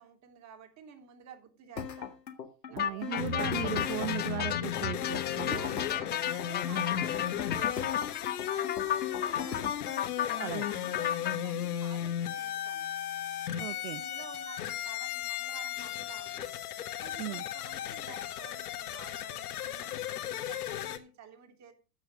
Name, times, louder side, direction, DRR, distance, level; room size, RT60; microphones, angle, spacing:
voice 1, 0.0-2.2 2.7-3.3 5.0-5.2 5.5-12.9 13.5-16.5 17.0-21.7, right 8 dB, 35° right, 3.0 m, -52 dB
sound 1, 1.8-9.8, left 7 dB, 80° left, 1.9 m, -39 dB
voice 2, 2.7-5.6 10.4-10.7 13.6-14.0 17.2-17.4, right 15 dB, 60° right, 0.6 m, -37 dB
sound 2, 2.8-11.4, left 10 dB, 20° left, 0.8 m, -34 dB
sound 3, 3.2-21.0, left 11 dB, 65° left, 1.6 m, -36 dB
14.0 x 6.6 x 6.4 m
figure-of-eight pair, 90°, 49 cm